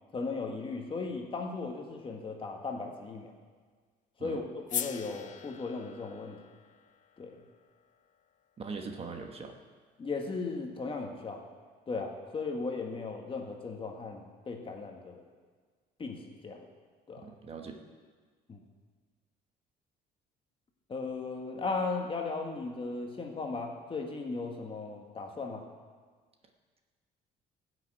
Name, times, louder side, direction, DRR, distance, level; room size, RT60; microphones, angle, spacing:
voice 1, 0.1-3.3 4.2-6.4 7.2-7.4 10.0-11.4 11.9-15.2 16.0-16.6 17.1-17.2 18.5-18.6 20.9-25.6, left 4 dB, 30° left, 2 dB, 1.7 m, -37 dB
sound 1, 4.7-8.9, left 9 dB, 50° left, 0.6 m, -42 dB
voice 2, 8.6-9.6 17.2-17.8, right 4 dB, 35° right, 4 dB, 1.2 m, -41 dB
13.5 x 6.6 x 9.0 m, 1.5 s
cardioid pair, 110°, 17 cm